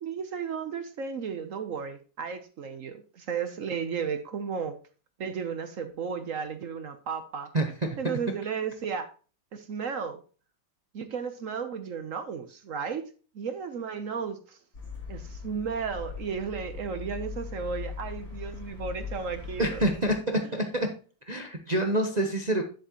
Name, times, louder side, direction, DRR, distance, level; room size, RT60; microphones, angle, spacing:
voice 1, 0.0-4.8 5.2-7.5 8.0-9.1 9.5-10.2 10.9-13.1 13.3-14.6 15.1-19.9, right 6 dB, 60° right, 9 dB, 0.9 m, -34 dB
sound 1, 14.7-20.1, left 4 dB, 50° left, 3.6 m, -40 dB
voice 2, 19.6-20.9 21.3-22.6, right 1 dB, 35° right, 4 dB, 0.7 m, -27 dB
10.0 x 7.5 x 2.9 m, 0.37 s
omnidirectional pair, 2.0 m